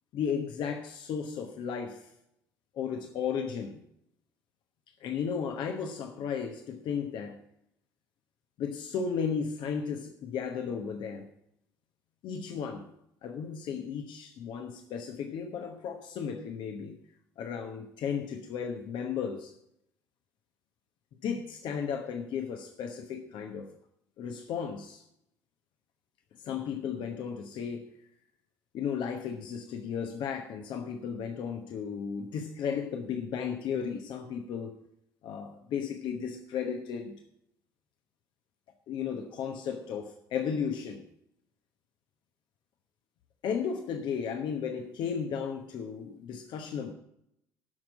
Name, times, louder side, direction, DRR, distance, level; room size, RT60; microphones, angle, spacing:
voice 1, 0.1-2.1 2.7-3.8 5.0-7.4 8.6-11.3 12.2-12.9 13.2-17.0 17.4-19.5 21.2-23.7 24.2-25.0 26.4-27.8 28.7-34.7 35.2-37.2 38.9-41.0 43.4-46.9, left 7 dB, 55° left, 5 dB, 1.1 m, -34 dB
12.5 x 6.1 x 7.4 m, 0.77 s
figure-of-eight pair, 55°, 10 cm